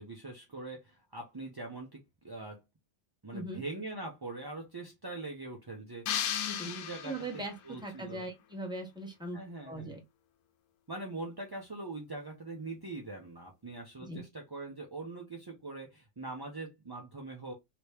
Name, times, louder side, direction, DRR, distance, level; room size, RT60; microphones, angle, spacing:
voice 1, 0.0-2.6 3.2-6.2 6.6-7.1 7.6-8.2 9.3-9.9 10.9-17.5, right 2 dB, 30° right, 0.4 m, -42 dB
voice 2, 3.3-3.6 6.5-6.7 7.0-9.4 9.6-10.0 14.1-14.2, right 1 dB, 5° right, 0.9 m, -40 dB
sound 1, 6.1-7.6, left 9 dB, 80° left, 1.1 m, -35 dB
2.9 x 2.9 x 3.2 m
omnidirectional pair, 1.5 m